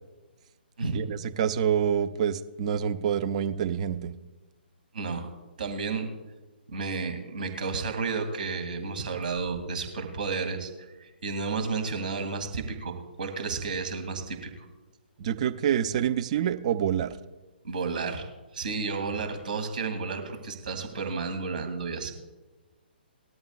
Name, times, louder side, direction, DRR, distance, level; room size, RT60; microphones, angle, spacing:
voice 1, 0.9-4.1 15.2-17.1, right 9 dB, 40° right, 12 dB, 0.8 m, -27 dB
voice 2, 4.9-5.3 5.6-6.1 6.7-10.7 11.0-14.5 17.6-18.3 18.5-22.1, right 4 dB, 55° right, 5 dB, 2.4 m, -32 dB
19.5 x 12.5 x 2.4 m, 1.2 s
figure-of-eight pair, 130°, 6 cm